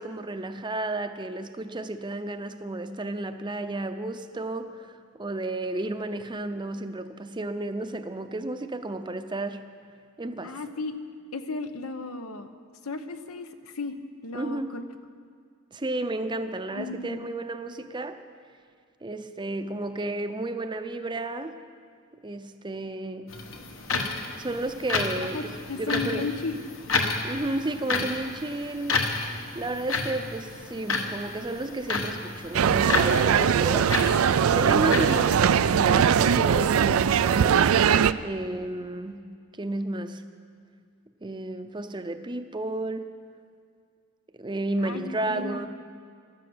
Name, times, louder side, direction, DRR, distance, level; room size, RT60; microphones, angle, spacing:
voice 1, 0.0-9.6 10.2-10.6 14.3-14.7 15.7-18.2 19.0-21.6 22.2-23.3 24.3-26.3 27.2-29.0 29.5-34.0 34.5-37.7 38.2-39.3 39.6-40.2 41.2-43.1 44.3-45.7, right 2 dB, 20° right, 9 dB, 0.6 m, -32 dB
voice 2, 10.4-11.0 11.3-12.5 12.8-14.0 14.2-14.8 16.7-17.3 25.2-26.6 44.8-45.6, left 3 dB, 85° left, 8 dB, 0.9 m, -34 dB
sound 1, 23.3-35.7, left 3 dB, 65° left, 1.3 m, -31 dB
sound 2, 32.5-38.1, right 7 dB, 75° right, 0.4 m, -21 dB
13.5 x 11.5 x 7.9 m, 2.2 s
head